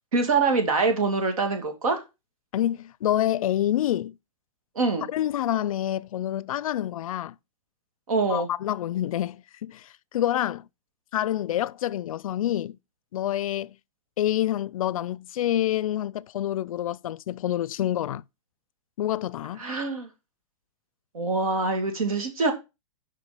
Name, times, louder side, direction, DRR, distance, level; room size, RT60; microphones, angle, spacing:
voice 1, 0.1-2.0 4.8-5.1 8.1-8.5 19.6-20.1 21.1-22.5, right 3 dB, 90° right, 2.2 m, -24 dB
voice 2, 2.5-4.1 5.1-7.4 8.3-10.7 11.1-12.8 13.1-13.8 14.2-18.2 19.0-19.6, left 12 dB, 80° left, 0.4 m, -27 dB
5.5 x 5.3 x 4.8 m
hypercardioid pair, 150°, 18 cm